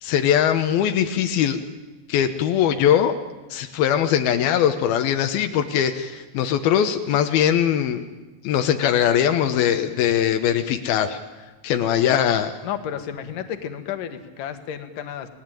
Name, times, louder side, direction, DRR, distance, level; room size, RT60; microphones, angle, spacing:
voice 1, 0.0-1.6 2.1-3.2 3.5-8.1 8.4-11.2 11.6-12.5, left 9 dB, 85° left, 6 dB, 2.9 m, -21 dB
voice 2, 12.6-15.3, left 9 dB, 65° left, 8 dB, 3.1 m, -32 dB
29.5 x 19.0 x 9.1 m, 1.2 s
omnidirectional pair, 4.2 m